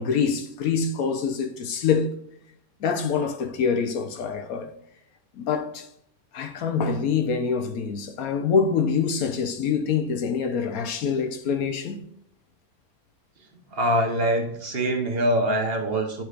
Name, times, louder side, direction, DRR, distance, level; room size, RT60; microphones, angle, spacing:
voice 1, 0.0-2.1 2.8-4.7 5.4-5.9 6.3-12.0, left 6 dB, 70° left, 1.4 m, -25 dB
voice 2, 13.7-16.2, right 1 dB, 45° right, 1.3 m, -24 dB
11.0 x 4.9 x 2.5 m
omnidirectional pair, 1.6 m